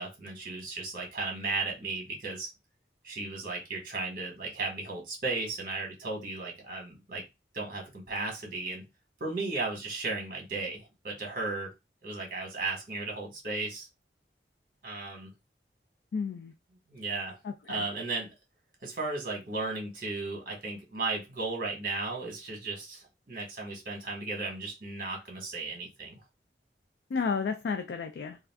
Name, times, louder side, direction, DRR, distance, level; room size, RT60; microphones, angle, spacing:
voice 1, 0.0-2.5 3.0-7.2 7.5-8.8 9.2-11.7 12.0-13.9 14.8-15.3 16.9-17.4 17.7-18.3 18.8-26.2, right 3 dB, 50° right, 1.2 m, -35 dB
voice 2, 16.1-16.5 17.4-17.9 27.1-28.4, left 5 dB, 70° left, 0.3 m, -32 dB
2.4 x 2.4 x 3.4 m
head